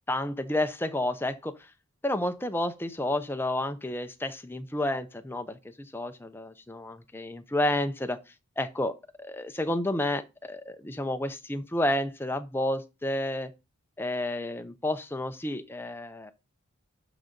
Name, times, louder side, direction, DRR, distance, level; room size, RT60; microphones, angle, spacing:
voice 1, 0.1-1.7 2.0-8.2 8.6-8.9 9.2-13.5 14.0-16.3, left 1 dB, 10° left, 0.6 m, -30 dB
12.0 x 4.0 x 5.2 m
head